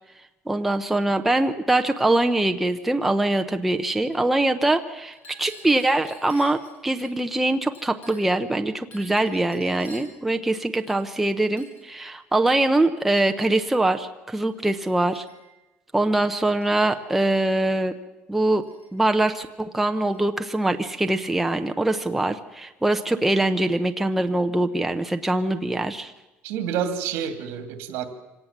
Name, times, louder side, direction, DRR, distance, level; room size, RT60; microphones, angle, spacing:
voice 1, 0.5-15.2 15.9-17.9 18.3-26.1, right 2 dB, 5° right, 6 dB, 0.7 m, -23 dB
Chink clink, 5.1-7.1 7.7-8.4 8.9-10.2 10.7-11.3 11.6-11.9 12.5-12.7 13.4-13.6 14.3-14.5 14.9-15.6 16.3-16.9 17.2-17.6 18.6-19.3 20.1-20.2 20.5-21.4, equal, 40° left, 6.5 m, -50 dB
voice 2, 26.4-28.1, right 8 dB, 70° right, 9 dB, 2.5 m, -28 dB
25.0 x 18.0 x 7.3 m, 1.1 s
cardioid pair, 180°, 4 cm